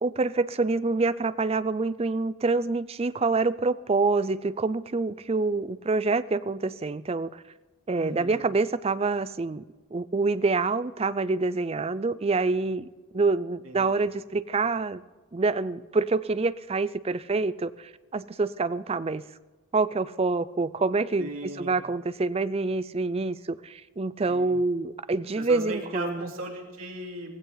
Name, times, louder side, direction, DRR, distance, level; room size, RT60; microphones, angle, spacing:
voice 1, 0.0-7.4 7.9-9.6 9.9-12.9 13.1-15.0 15.3-19.2 19.7-26.3, right 3 dB, 25° right, 15 dB, 0.4 m, -26 dB
voice 2, 7.9-8.4 13.6-13.9 21.2-21.7 24.2-24.5 25.4-27.3, right 1 dB, 65° right, 0 dB, 3.2 m, -36 dB
17.5 x 16.0 x 4.0 m, 1.3 s
head